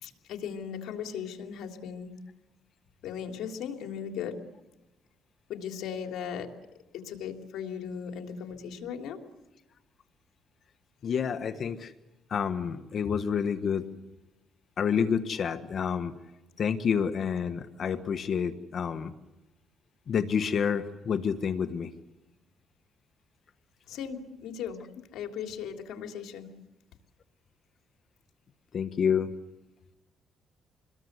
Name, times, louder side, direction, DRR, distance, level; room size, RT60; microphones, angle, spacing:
voice 1, 0.0-2.1 3.0-4.4 5.5-6.5 6.9-9.2 23.9-24.8 25.1-26.5, left 7 dB, 85° left, 3 dB, 3.2 m, -37 dB
voice 2, 11.0-11.9 12.3-13.9 14.8-16.1 16.6-19.1 20.1-21.9 28.7-29.3, left 7 dB, 55° left, 10 dB, 1.4 m, -28 dB
27.5 x 21.5 x 8.2 m, 1.0 s
cardioid pair, 90°, 0 cm